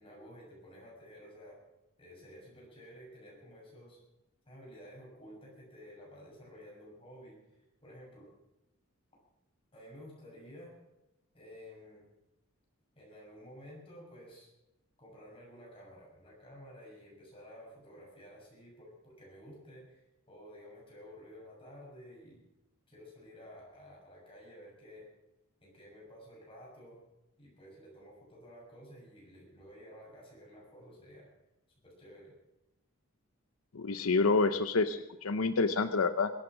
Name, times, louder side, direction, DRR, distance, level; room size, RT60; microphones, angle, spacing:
voice 1, 0.0-1.6 2.0-4.0 4.4-7.4 7.8-8.3 9.7-10.8 11.3-12.0 12.9-14.5 15.0-20.0 20.3-22.4 22.9-25.1 25.6-27.0 27.4-31.3 31.8-32.3, equal, 25° left, -3 dB, 6.7 m, -52 dB
voice 2, 33.7-36.3, left 4 dB, 85° left, 11 dB, 0.7 m, -28 dB
23.0 x 8.8 x 6.2 m, 0.94 s
head